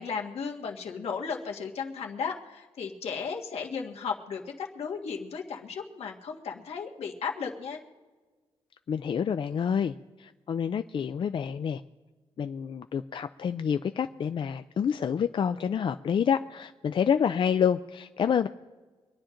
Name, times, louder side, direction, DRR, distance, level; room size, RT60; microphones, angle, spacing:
voice 1, 0.0-7.8, left 6 dB, 80° left, 1 dB, 1.7 m, -35 dB
voice 2, 8.9-11.8 12.4-18.5, left 7 dB, 55° left, 9 dB, 0.4 m, -28 dB
25.0 x 10.0 x 3.8 m, 1.4 s
cardioid pair, 100°, 10 cm